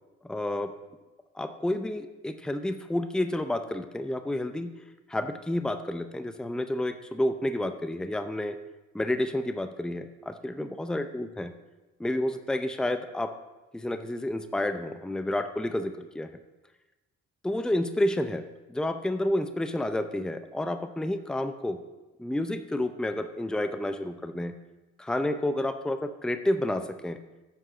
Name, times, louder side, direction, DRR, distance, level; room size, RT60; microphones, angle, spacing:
voice 1, 0.2-0.7 1.3-4.7 5.1-8.5 8.9-11.5 12.0-13.3 13.7-16.3 17.4-21.8 22.2-24.6 25.0-27.2, left 1 dB, ahead, 8 dB, 0.6 m, -30 dB
9.2 x 6.5 x 5.9 m, 1.1 s
cardioid pair, 90°, 30 cm